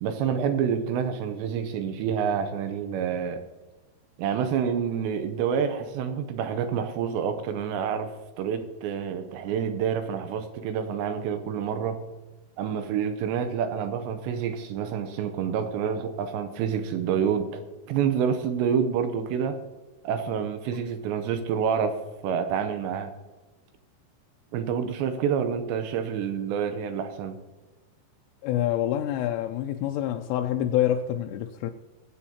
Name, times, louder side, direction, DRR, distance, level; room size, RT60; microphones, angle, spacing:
voice 1, 0.0-3.4 4.2-12.0 12.6-19.6 20.0-22.0 22.2-23.1 24.5-27.4, right 7 dB, 80° right, 2.7 m, -28 dB
voice 2, 28.4-31.7, left 11 dB, 85° left, 3.1 m, -26 dB
24.0 x 8.2 x 2.8 m
omnidirectional pair, 5.5 m